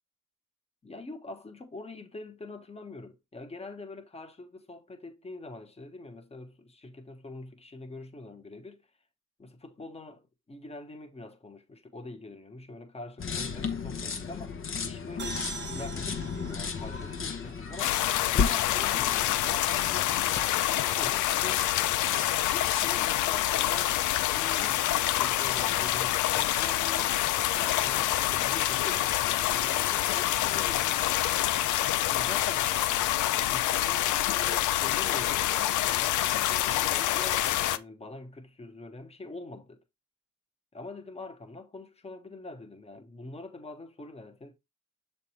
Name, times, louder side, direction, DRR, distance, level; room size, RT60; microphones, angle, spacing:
voice 1, 0.8-8.8 9.4-18.0 18.3-20.1 20.5-21.7 22.5-23.9 24.3-27.2 27.5-31.6 32.0-32.7 33.5-39.8 40.7-44.5, left 2 dB, 20° left, 1.2 m, -44 dB
sound 1, 13.2-21.1 21.4-21.8 22.0-23.0, left 6 dB, 45° left, 1.1 m, -34 dB
sound 2, 15.2-18.8, right 4 dB, 35° right, 1.1 m, -43 dB
sound 3, 17.8-37.8, left 13 dB, 80° left, 0.5 m, -27 dB
6.8 x 3.4 x 4.3 m
cardioid pair, 90°, 30 cm